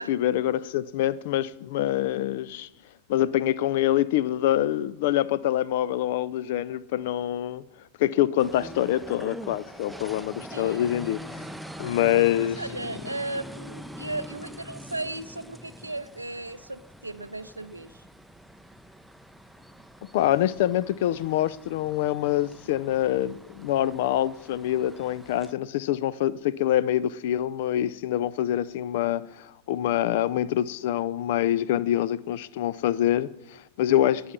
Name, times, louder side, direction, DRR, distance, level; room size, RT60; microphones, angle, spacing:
voice 1, 0.0-2.7 3.1-7.6 8.0-11.4 11.8-12.6 20.1-34.3, left 12 dB, 50° left, 0.5 m, -25 dB
sound 1, 8.4-25.5, equal, ahead, 0.6 m, -44 dB
voice 2, 10.5-11.1 12.0-18.0, right 2 dB, 85° right, 0.5 m, -36 dB
19.0 x 7.1 x 5.9 m
figure-of-eight pair, 90°, 0 cm